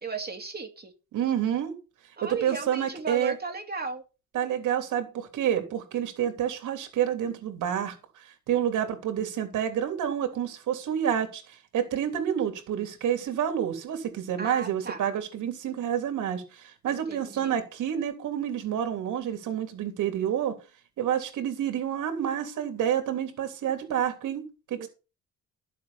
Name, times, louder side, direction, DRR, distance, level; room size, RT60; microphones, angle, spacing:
voice 1, 0.0-0.9 2.2-4.0 14.4-15.0 16.9-17.6 24.8-24.9, right 4 dB, 30° right, 2.3 m, -36 dB
voice 2, 1.1-1.7 2.3-3.4 4.3-8.0 8.5-20.6 21.0-24.4 24.7-24.9, right 9 dB, 80° right, 3.2 m, -28 dB
12.0 x 7.3 x 5.8 m
cardioid pair, 90°, 30 cm